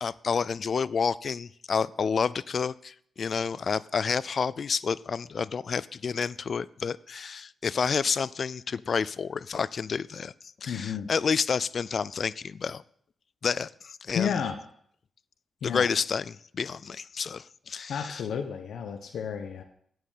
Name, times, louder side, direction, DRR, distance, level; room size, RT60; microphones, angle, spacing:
voice 1, 0.0-10.3 10.6-12.8 13.4-14.3 15.6-18.2, left 6 dB, 45° left, 20 dB, 0.4 m, -29 dB
voice 2, 10.7-11.1 14.1-14.6 15.6-15.8 17.9-19.6, left 7 dB, 75° left, 6 dB, 1.1 m, -31 dB
9.4 x 9.0 x 8.4 m, 0.64 s
wide cardioid pair, 145°, 0 cm